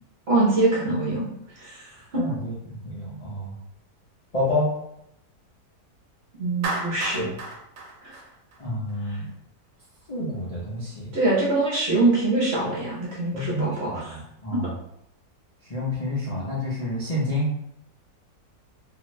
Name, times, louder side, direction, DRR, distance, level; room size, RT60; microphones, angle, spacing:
voice 1, 0.3-1.3 1.6-1.9 2.1-2.2 6.4-7.3 8.0-8.2 9.0-9.2 11.1-14.2 14.5-14.7, right 2 dB, 50° right, -6 dB, 0.8 m, -24 dB
voice 2, 2.1-3.6 4.3-4.7 7.2-7.4 8.6-9.3 10.1-11.1 13.3-14.7 15.7-17.5, left 1 dB, 75° left, -8 dB, 0.3 m, -29 dB
Clapping, 6.6-8.9, right 2 dB, 75° right, 1.1 m, -32 dB
2.8 x 2.5 x 3.0 m, 0.76 s
omnidirectional pair, 1.9 m